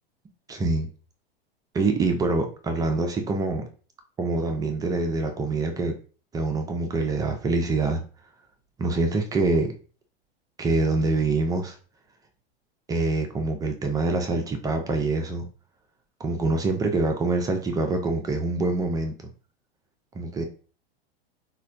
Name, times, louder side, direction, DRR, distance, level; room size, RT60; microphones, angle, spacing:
voice 1, 0.5-0.9 1.7-3.7 4.2-6.0 6.3-8.0 8.8-9.7 10.6-11.8 12.9-15.4 16.2-19.1 20.2-20.4, right 3 dB, 15° right, 4 dB, 0.3 m, -25 dB
4.0 x 2.2 x 2.4 m, 0.38 s
hypercardioid pair, 95°, 31 cm